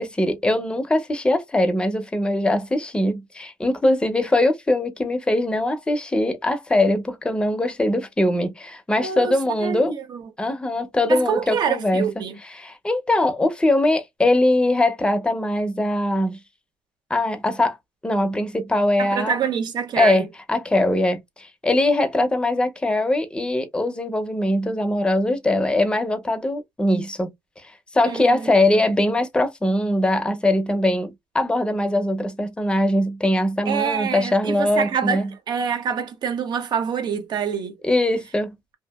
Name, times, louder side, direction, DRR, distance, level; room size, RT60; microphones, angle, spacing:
voice 1, 0.0-9.9 10.4-16.4 17.1-17.8 18.0-19.4 20.0-27.3 27.9-35.3 37.8-38.6, left 1 dB, 10° left, 0.6 m, -21 dB
voice 2, 9.0-10.3 11.1-12.4 19.0-20.3 28.0-28.5 33.7-37.8, right 7 dB, 60° right, 0.7 m, -26 dB
2.7 x 2.4 x 2.3 m
cardioid pair, 125°, 8 cm